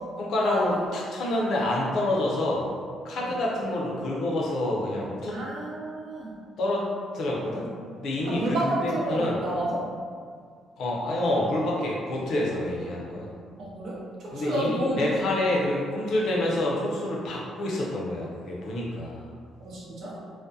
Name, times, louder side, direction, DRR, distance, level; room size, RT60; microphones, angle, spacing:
voice 1, 0.2-2.7 3.0-5.4 6.6-6.9 7.1-7.7 8.0-9.4 10.8-13.3 14.3-19.3, left 1 dB, 70° left, -3 dB, 0.5 m, -27 dB
voice 2, 5.3-6.3 8.2-9.9 13.6-15.1 19.6-20.2, right 1 dB, 70° right, -5 dB, 0.7 m, -30 dB
2.3 x 2.1 x 2.7 m, 2.1 s
cardioid pair, 75°, 0 cm